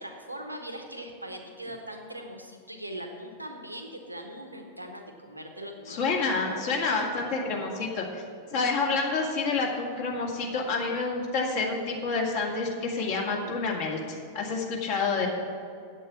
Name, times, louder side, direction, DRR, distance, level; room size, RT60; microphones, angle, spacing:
voice 1, 0.0-6.6, right 1 dB, 85° right, 4 dB, 1.1 m, -41 dB
voice 2, 5.9-8.2 8.5-15.3, left 4 dB, 50° left, -1 dB, 2.1 m, -28 dB
8.3 x 8.2 x 7.2 m, 2.4 s
figure-of-eight pair, 90°, 0 cm